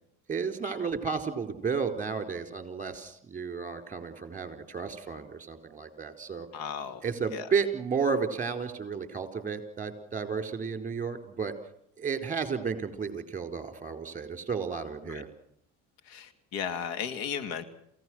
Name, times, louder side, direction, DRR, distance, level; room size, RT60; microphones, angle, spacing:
voice 1, 0.3-6.5 7.0-11.5 12.0-15.3, right 5 dB, 20° right, 8 dB, 4.5 m, -32 dB
voice 2, 6.5-7.5 15.0-15.2 16.0-17.6, left 7 dB, 75° left, 12 dB, 2.4 m, -36 dB
28.5 x 16.5 x 6.4 m, 0.72 s
supercardioid pair, 90°, 36 cm